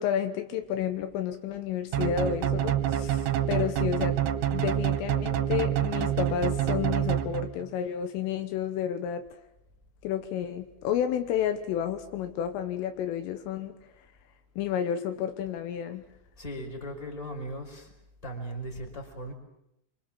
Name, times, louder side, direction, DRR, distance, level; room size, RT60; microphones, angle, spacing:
voice 1, 0.0-4.3 4.5-9.3 10.0-13.8 14.6-16.1, left 9 dB, 75° left, 3.6 m, -31 dB
sound 1, 1.9-7.7, right 10 dB, 70° right, 3.1 m, -27 dB
voice 2, 16.4-17.9 18.2-19.3, right 1 dB, 5° left, 4.1 m, -38 dB
25.5 x 25.5 x 7.6 m
omnidirectional pair, 6.0 m